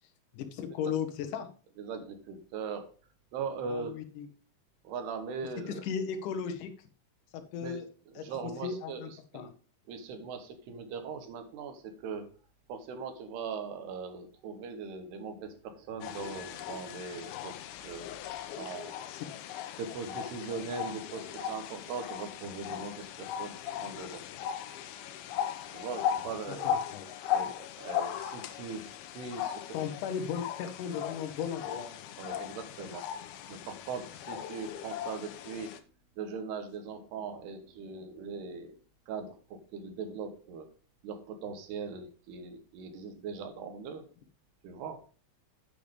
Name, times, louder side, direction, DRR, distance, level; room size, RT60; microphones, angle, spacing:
voice 1, 0.3-1.5 3.7-4.3 5.7-6.7 7.3-7.8 8.2-9.1 9.3-9.5 19.1-19.2 26.5-27.1 29.7-32.0, left 7 dB, 65° left, 6 dB, 2.3 m, -36 dB
voice 2, 1.8-2.9 3.3-4.0 4.9-5.8 7.6-7.8 8.1-9.5 9.9-12.3 12.7-18.9 19.8-24.3 25.7-26.8 27.3-29.6 32.2-33.1 33.5-35.7 36.2-40.7 41.0-44.1 44.6-45.0, right 5 dB, 90° right, 7 dB, 3.3 m, -40 dB
sound 1, 16.0-35.8, left 9 dB, 80° left, 2.5 m, -38 dB
8.7 x 5.9 x 5.1 m, 0.39 s
omnidirectional pair, 4.6 m